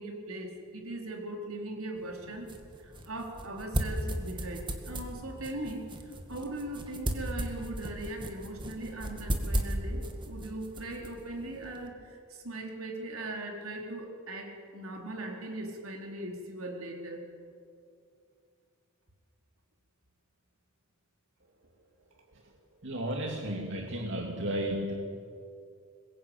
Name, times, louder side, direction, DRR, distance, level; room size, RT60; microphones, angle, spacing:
voice 1, 0.0-2.5 2.8-5.9 6.3-17.2, right 1 dB, 85° right, 1 dB, 4.4 m, -39 dB
sound 1, 2.0-11.9, right 1 dB, 25° right, 2.2 m, -36 dB
voice 2, 22.8-24.9, right 1 dB, 60° right, 0 dB, 2.6 m, -33 dB
23.5 x 21.0 x 9.2 m, 2.4 s
head